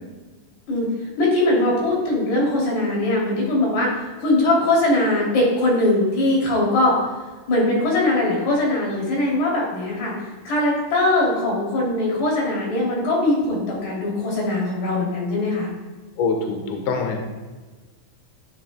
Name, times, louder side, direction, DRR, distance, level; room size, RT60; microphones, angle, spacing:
voice 1, 0.7-7.0 7.5-10.1 10.4-15.7, left 2 dB, 85° left, -4 dB, 4.9 m, -21 dB
voice 2, 16.2-17.2, left 4 dB, 65° left, 2 dB, 2.3 m, -24 dB
12.0 x 11.0 x 2.2 m, 1.3 s
omnidirectional pair, 4.5 m